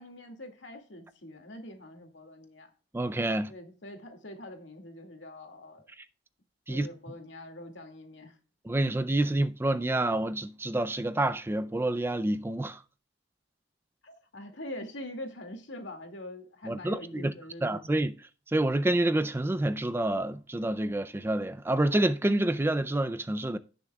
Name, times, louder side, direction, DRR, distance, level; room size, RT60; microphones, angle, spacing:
voice 1, 0.0-2.7 3.5-5.9 6.7-8.3 14.0-17.9, left 1 dB, 80° left, 2.2 m, -44 dB
voice 2, 2.9-3.5 6.7-6.9 8.7-12.8 16.6-17.3 17.6-18.2 18.5-23.6, right 1 dB, 15° right, 0.4 m, -28 dB
17.0 x 6.6 x 2.3 m
head